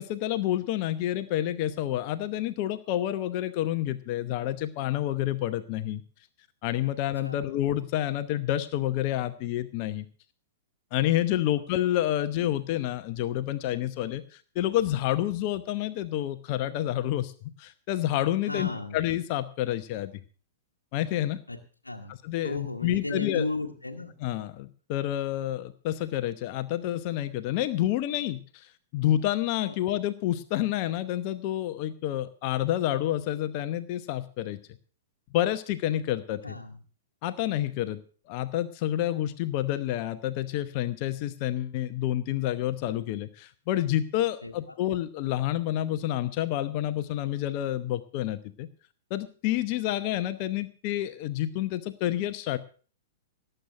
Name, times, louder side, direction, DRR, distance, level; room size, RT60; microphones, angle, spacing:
voice 1, 0.0-6.0 6.6-10.1 10.9-17.3 17.6-20.1 20.9-21.4 22.2-23.4 24.2-34.6 35.3-36.5 37.2-38.0 38.3-48.7 49.1-52.6, left 13 dB, 40° left, 11 dB, 0.9 m, -29 dB
voice 2, 6.8-7.5 18.5-19.0 21.5-21.6 21.8-22.2 22.4-24.1 29.6-29.8 36.4-36.8 44.4-44.8, left 2 dB, 90° left, 1 dB, 1.2 m, -35 dB
18.0 x 7.9 x 6.0 m, 0.41 s
figure-of-eight pair, 105°, 0 cm